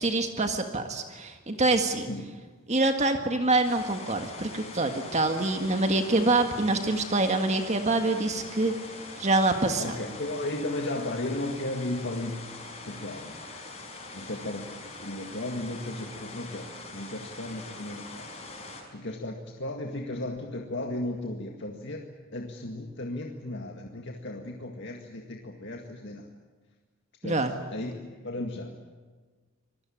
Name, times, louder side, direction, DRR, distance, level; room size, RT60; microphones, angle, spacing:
voice 1, 0.0-2.1 2.7-8.7 9.2-10.0 27.2-27.5, right 2 dB, 35° right, 6 dB, 1.7 m, -25 dB
sound 1, 3.6-18.8, left 3 dB, 30° left, 5.8 m, -43 dB
voice 2, 9.8-12.4 12.8-13.4 14.1-18.3 18.6-22.0 22.3-26.3 27.2-27.4 27.7-28.7, left 1 dB, 60° left, 2 dB, 2.0 m, -35 dB
25.5 x 20.5 x 8.8 m, 1.4 s
head